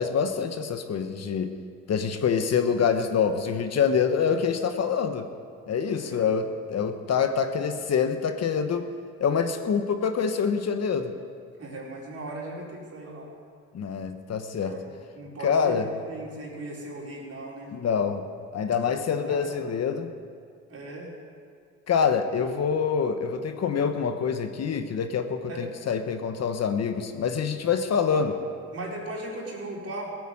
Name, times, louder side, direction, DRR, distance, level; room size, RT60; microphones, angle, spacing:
voice 1, 0.0-1.5 1.9-5.2 5.7-8.9 9.2-11.1 13.7-14.8 15.4-15.9 17.7-18.2 18.5-20.1 21.9-28.3, left 6 dB, 55° left, 7 dB, 1.2 m, -26 dB
voice 2, 6.0-6.4 11.6-13.3 14.6-14.9 15.1-17.7 19.1-19.6 20.7-21.1 25.5-25.6 28.1-28.2 28.7-30.1, right 2 dB, 55° right, -3 dB, 4.4 m, -38 dB
16.5 x 9.3 x 7.7 m, 2.3 s
cardioid pair, 90°, 30 cm